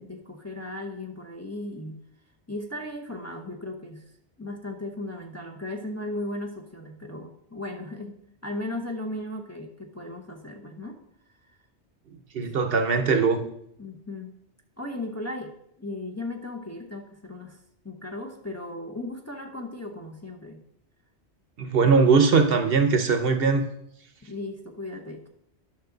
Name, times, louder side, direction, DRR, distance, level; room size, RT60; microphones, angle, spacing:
voice 1, 0.0-2.0 2.5-4.1 4.4-11.0 13.8-14.3 14.8-17.6 17.8-20.6 24.2-25.3, left 1 dB, 15° left, 1 dB, 0.8 m, -36 dB
voice 2, 12.3-13.4 21.6-23.6, right 5 dB, 60° right, 7 dB, 0.9 m, -20 dB
11.0 x 6.1 x 3.9 m, 0.76 s
omnidirectional pair, 1.1 m